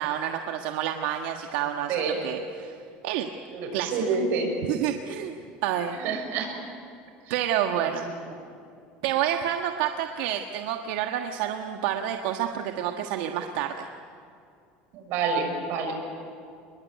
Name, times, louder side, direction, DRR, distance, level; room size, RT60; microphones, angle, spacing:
voice 1, 0.0-2.8 3.0-3.3 3.7-4.0 4.7-5.3 5.6-6.0 7.3-8.1 9.0-13.9, right 10 dB, 75° right, 4 dB, 1.4 m, -29 dB
voice 2, 3.5-4.5 6.0-6.5 7.8-7.9 14.9-15.9, right 5 dB, 50° right, 3 dB, 6.4 m, -27 dB
29.5 x 21.0 x 9.3 m, 2.5 s
cardioid pair, 175°, 4 cm